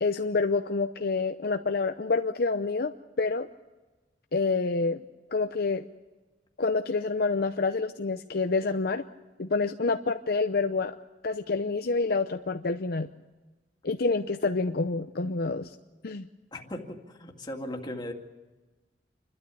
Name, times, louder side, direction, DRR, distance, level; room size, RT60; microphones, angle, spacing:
voice 1, 0.0-3.5 4.3-5.0 5.3-5.9 6.6-9.0 9.4-10.9 11.2-13.1 13.8-15.7 16.0-16.3, left 3 dB, 55° left, 7 dB, 0.7 m, -27 dB
voice 2, 16.5-18.1, left 1 dB, 25° left, 2 dB, 2.4 m, -37 dB
28.0 x 12.5 x 8.5 m, 1.2 s
head